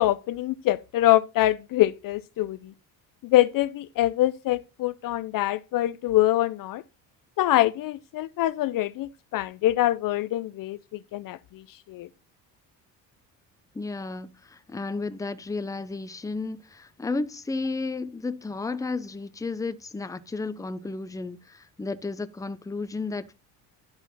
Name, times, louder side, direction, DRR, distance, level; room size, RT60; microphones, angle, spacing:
voice 1, 0.0-2.7 3.2-6.8 7.4-12.1, left 15 dB, 50° left, 0.5 m, -24 dB
voice 2, 13.7-23.3, left 3 dB, 10° left, 0.6 m, -33 dB
11.5 x 4.4 x 4.1 m
supercardioid pair, 85°, 42 cm